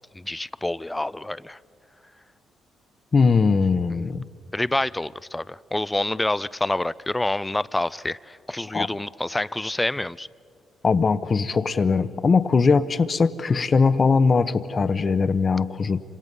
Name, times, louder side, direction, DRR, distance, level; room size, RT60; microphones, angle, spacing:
voice 1, 0.1-1.6 3.9-4.0 4.5-10.3, left 1 dB, 15° left, 18 dB, 0.6 m, -27 dB
voice 2, 3.1-4.2 8.7-8.9 10.8-16.0, left 4 dB, 45° left, 12 dB, 1.0 m, -20 dB
27.5 x 26.0 x 5.5 m, 2.2 s
supercardioid pair, 60°, 0 cm